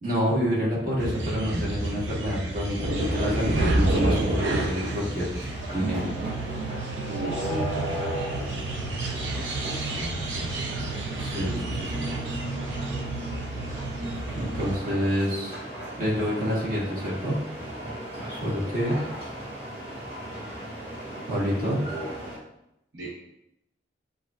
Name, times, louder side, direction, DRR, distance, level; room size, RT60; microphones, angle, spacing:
voice 1, 0.0-5.3 5.7-6.1 11.2-12.0 14.3-15.6 16.0-17.4 18.3-19.0 21.3-21.9, equal, 50° right, -7 dB, 1.6 m, -28 dB
sound 1, 1.0-14.8, right 2 dB, 85° right, 0.6 m, -30 dB
sound 2, 3.0-22.4, right 1 dB, 30° right, 1.5 m, -37 dB
voice 2, 7.1-8.2 22.9-23.1, right 1 dB, 65° right, -7 dB, 1.0 m, -34 dB
7.8 x 2.6 x 2.4 m, 0.83 s
head